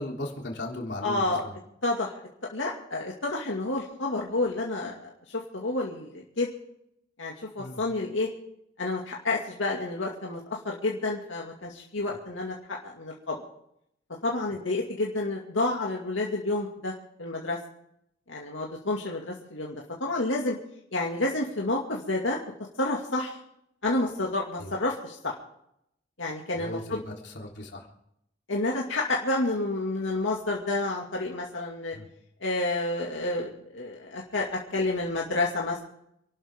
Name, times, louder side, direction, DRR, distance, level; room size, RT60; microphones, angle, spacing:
voice 1, 0.0-1.6 7.6-7.8 24.6-24.8 26.5-27.9 31.9-32.1, left 1 dB, 65° left, 0 dB, 3.5 m, -37 dB
voice 2, 1.0-1.5 1.8-2.1 2.5-5.1 5.5-6.5 7.2-8.3 8.8-13.4 14.2-16.9 17.2-17.6 18.3-20.6 20.9-22.4 22.8-23.4 23.8-25.3 26.2-27.0 28.5-32.0 32.4-35.8, left 2 dB, 85° left, -2 dB, 2.3 m, -29 dB
28.0 x 12.0 x 3.7 m, 0.77 s
head